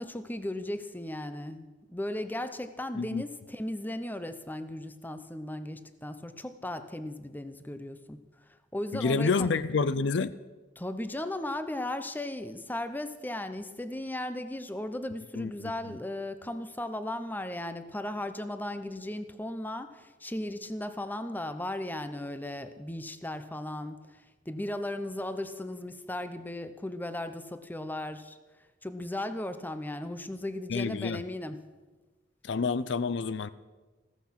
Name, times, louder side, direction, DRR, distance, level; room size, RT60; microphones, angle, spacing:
voice 1, 0.0-8.2 8.7-9.5 10.8-28.4 28.8-31.6, left 1 dB, 10° left, 11 dB, 0.8 m, -36 dB
voice 2, 8.9-10.3 15.4-15.7 30.7-31.2 32.4-33.5, left 4 dB, 65° left, 16 dB, 0.5 m, -28 dB
15.0 x 14.5 x 5.9 m, 1.3 s
head